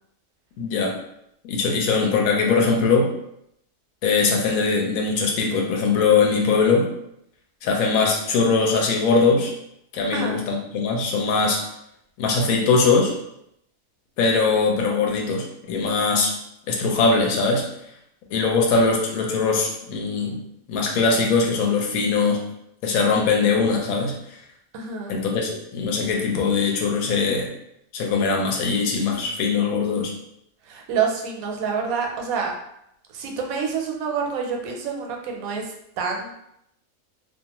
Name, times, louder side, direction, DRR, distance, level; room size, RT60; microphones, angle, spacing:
voice 1, 0.6-0.9 1.4-3.1 4.0-6.9 7.6-9.5 9.9-11.6 12.2-13.1 14.2-16.3 16.7-17.7 18.3-20.4 20.7-22.4 22.8-24.1 25.1-27.5 27.9-30.1, left 4 dB, 90° left, 1 dB, 1.0 m, -21 dB
voice 2, 10.1-10.4 24.7-25.2 30.7-32.5 33.1-36.3, right 6 dB, 85° right, 1 dB, 1.0 m, -27 dB
2.4 x 2.4 x 2.8 m, 0.77 s
omnidirectional pair, 1.4 m